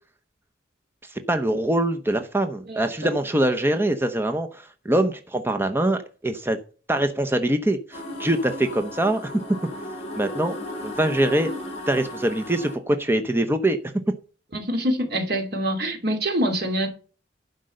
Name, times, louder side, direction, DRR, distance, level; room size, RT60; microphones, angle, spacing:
voice 1, 1.1-6.6 6.9-9.3 10.2-10.5 10.8-11.5 11.9-13.8, right 1 dB, 15° right, 0.7 m, -23 dB
sound 1, 7.9-12.8, left 1 dB, 35° left, 3.6 m, -35 dB
voice 2, 14.5-16.9, equal, 60° right, 2.6 m, -25 dB
11.5 x 5.3 x 6.4 m
head